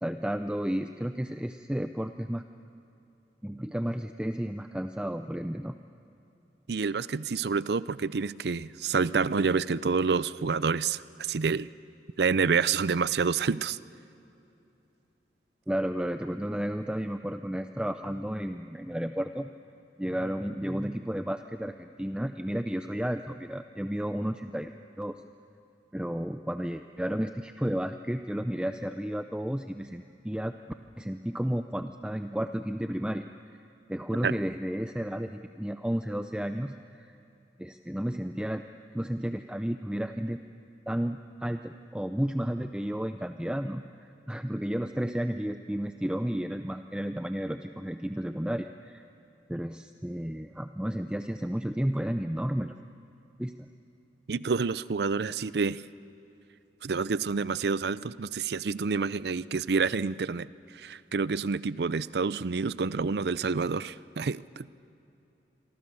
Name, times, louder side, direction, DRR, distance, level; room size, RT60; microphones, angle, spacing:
voice 1, 0.0-2.4 3.4-5.7 15.7-19.5 20.0-24.7 25.0-25.1 25.9-30.6 31.0-33.3 33.9-37.1 37.6-38.6 38.9-40.4 40.9-49.0 49.5-52.7 53.4-53.7, equal, 5° right, 8 dB, 0.5 m, -32 dB
voice 2, 6.7-11.7 12.2-13.8 34.2-34.3 54.3-55.8 56.8-60.5 60.7-64.7, right 5 dB, 70° right, 18 dB, 0.5 m, -28 dB
28.0 x 23.5 x 7.0 m, 2.8 s
head